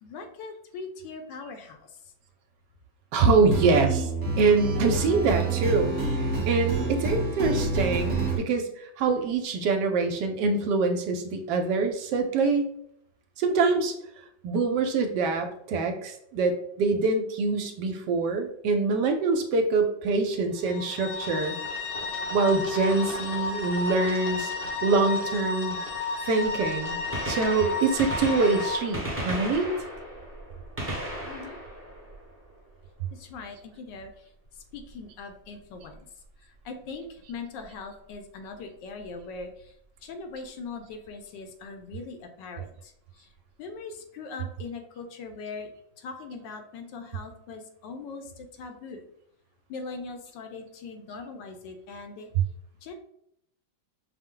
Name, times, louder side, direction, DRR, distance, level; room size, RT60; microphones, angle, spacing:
voice 1, 0.0-2.1 31.2-31.6 33.1-36.0 36.4-39.7 40.0-43.3 43.6-45.7 46.0-49.1 49.7-52.3 52.8-52.9, left 4 dB, 75° left, 5 dB, 1.2 m, -41 dB
voice 2, 3.1-4.1 4.4-12.6 13.4-14.0 14.4-21.5 22.3-24.5 24.8-25.8 26.2-27.0 27.3-29.7, right 4 dB, 75° right, 5 dB, 1.1 m, -25 dB
sound 1, 3.4-8.4, right 3 dB, 45° right, 1.2 m, -27 dB
sound 2, 20.6-28.8, left 3 dB, 55° left, 0.6 m, -32 dB
Gunshot gunfire, 27.0-32.8 34.8-34.9 35.9-36.0 37.6-37.7 39.1-39.2 39.4-39.5, right 1 dB, 10° right, 0.6 m, -35 dB
5.6 x 2.0 x 3.7 m, 0.73 s
omnidirectional pair, 2.0 m